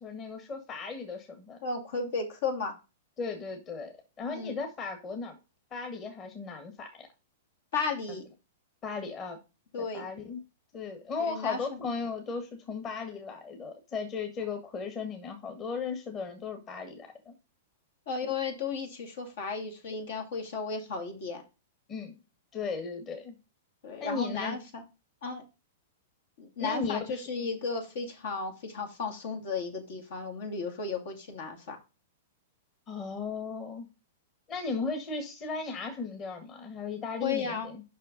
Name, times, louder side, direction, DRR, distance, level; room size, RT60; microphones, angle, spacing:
voice 1, 0.0-1.6 3.2-5.4 5.7-7.1 8.8-9.4 9.8-10.4 10.7-17.3 18.2-18.3 21.9-22.1 22.5-23.4 24.0-24.6 26.6-27.2 32.9-33.9 34.5-37.8, left 4 dB, 30° left, 5 dB, 1.7 m, -36 dB
voice 2, 1.6-2.7 4.3-4.6 7.7-8.2 9.7-10.1 11.2-11.6 18.1-21.4 23.8-24.8 25.2-25.4 26.4-31.8 37.2-37.7, left 4 dB, 65° left, 2 dB, 2.2 m, -34 dB
5.8 x 5.4 x 5.2 m, 0.29 s
hypercardioid pair, 110°, 0 cm